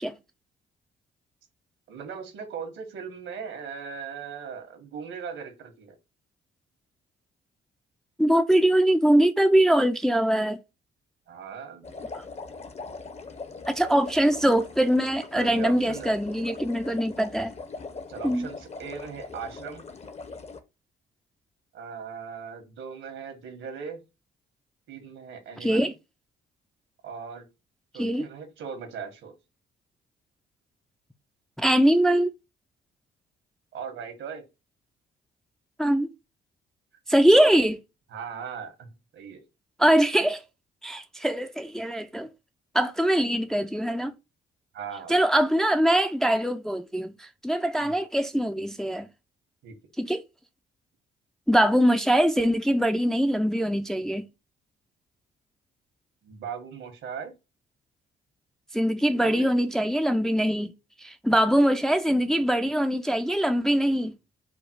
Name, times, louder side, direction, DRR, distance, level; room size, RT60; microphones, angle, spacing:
voice 1, 1.9-5.9 11.3-11.9 15.3-16.1 18.1-19.8 21.7-24.0 24.9-25.9 27.0-27.4 27.9-29.3 33.7-34.4 38.1-38.9 39.1-39.4 44.7-45.2 47.8-48.0 49.6-49.7 56.2-57.3 59.2-59.5, right 6 dB, 80° right, 1.6 m, -38 dB
voice 2, 8.2-10.6 13.7-17.5 18.2-18.5 25.6-25.9 28.0-28.3 31.6-32.3 35.8-36.1 37.1-37.8 39.8-40.4 40.8-42.3 42.7-44.1 45.1-47.1 47.4-49.1 50.0-50.2 51.5-54.3 58.7-60.7 61.0-64.1, right 1 dB, 5° left, 0.4 m, -22 dB
sound 1, 11.8-20.6, left 4 dB, 35° left, 0.8 m, -41 dB
5.0 x 2.3 x 4.6 m
cardioid pair, 90°, 20 cm